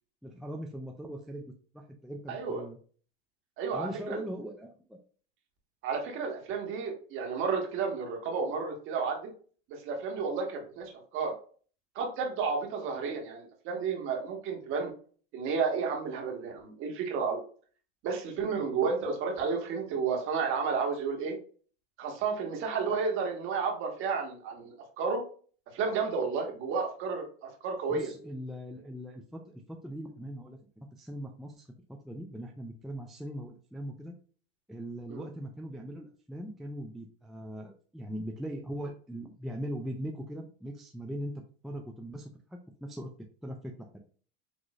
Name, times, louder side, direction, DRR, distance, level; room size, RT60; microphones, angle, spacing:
voice 1, 0.2-1.4 1.7-2.8 3.7-5.0 27.9-34.1 34.7-41.3 41.6-43.1 43.4-44.0, equal, ahead, 1 dB, 0.3 m, -40 dB
voice 2, 2.3-2.6 3.6-4.2 5.8-9.3 9.7-11.3 11.9-14.9 15.3-17.4 18.0-21.4 22.0-25.2 25.7-28.1 35.1-35.2, right 5 dB, 45° right, 2 dB, 1.6 m, -32 dB
6.3 x 3.0 x 2.5 m, 0.43 s
supercardioid pair, 125°, 29 cm